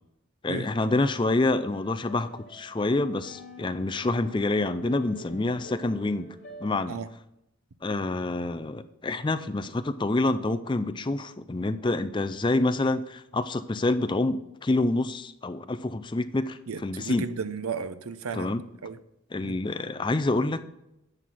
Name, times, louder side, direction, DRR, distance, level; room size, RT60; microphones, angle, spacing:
voice 1, 0.4-6.3 6.6-7.0 7.8-17.3 18.3-18.6 19.3-20.6, left 2 dB, 20° left, 11 dB, 0.4 m, -27 dB
sound 1, 1.2-6.7, left 1 dB, 60° left, 2.3 m, -47 dB
voice 2, 16.7-18.5 18.8-19.0 19.4-19.6, right 5 dB, 85° right, 13 dB, 0.7 m, -34 dB
11.0 x 7.6 x 4.1 m, 0.87 s
head